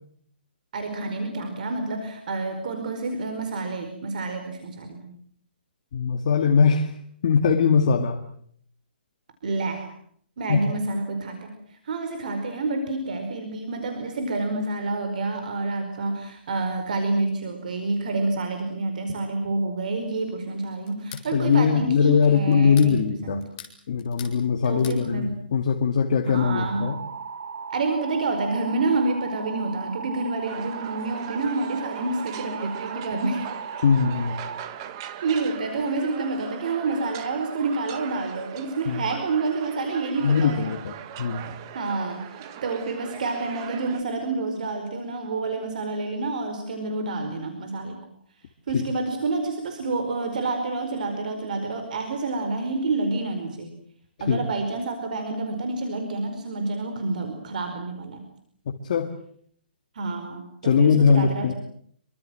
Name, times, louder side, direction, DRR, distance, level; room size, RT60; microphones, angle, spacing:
voice 1, 0.7-5.1 9.4-9.9 10.4-23.5 24.6-25.4 26.2-27.0 27.7-33.4 35.2-40.8 41.7-48.0 48.7-53.8 54.2-58.2 59.9-61.5, right 3 dB, 50° right, 6 dB, 4.8 m, -28 dB
voice 2, 5.9-6.9 7.2-8.2 10.5-10.6 21.3-23.4 23.9-27.0 33.8-34.4 38.9-39.0 40.2-40.9 41.2-41.6 48.7-48.8 54.3-54.4 58.7-59.1 60.6-61.5, left 6 dB, 40° left, 3 dB, 2.2 m, -21 dB
sound 1, 20.9-21.3 22.5-22.9 23.4-24.4 24.6-25.0, left 8 dB, 20° left, 5.1 m, -42 dB
sound 2, 26.4-34.7, right 6 dB, 70° right, 2.3 m, -37 dB
sound 3, 30.4-44.0, right 10 dB, 25° right, 1.7 m, -40 dB
27.0 x 24.5 x 7.8 m, 0.64 s
hypercardioid pair, 175°, 6 cm